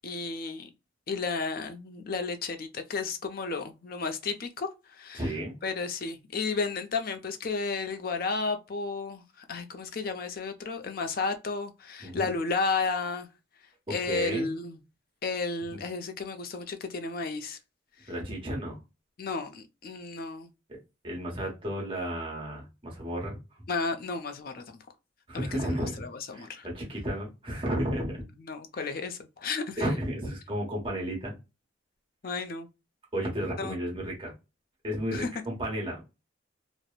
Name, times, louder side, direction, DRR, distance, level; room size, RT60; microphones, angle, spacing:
voice 1, 0.0-0.7 1.1-5.3 5.6-9.2 9.5-13.3 13.9-14.8 15.2-17.6 19.2-20.5 23.7-24.8 25.3-26.7 28.5-29.8 32.2-32.7 33.6-33.8 35.1-35.3, left 4 dB, 45° left, 0.4 m, -33 dB
voice 2, 5.1-5.5 12.0-12.3 14.1-14.5 18.1-18.8 21.0-23.4 25.3-26.0 26.3-28.2 28.7-29.0 29.8-31.3 33.1-34.3 34.8-36.0, equal, 25° right, 1.1 m, -33 dB
3.0 x 2.0 x 2.3 m
head